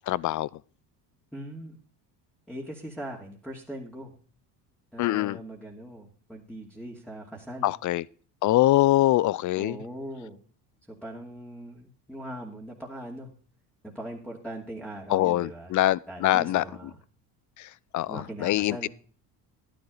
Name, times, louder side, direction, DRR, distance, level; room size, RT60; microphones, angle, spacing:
voice 1, 0.1-0.5 5.0-5.4 7.6-8.0 8.4-9.8 15.1-16.6 17.6-17.7 17.9-18.9, left 15 dB, 40° left, 0.4 m, -23 dB
voice 2, 1.3-1.8 2.5-4.1 4.9-7.7 9.5-10.4 10.9-13.3 13.8-15.7 16.1-16.9 18.1-18.9, right 1 dB, ahead, 2.6 m, -40 dB
11.5 x 10.5 x 3.9 m
supercardioid pair, 80°, 48 cm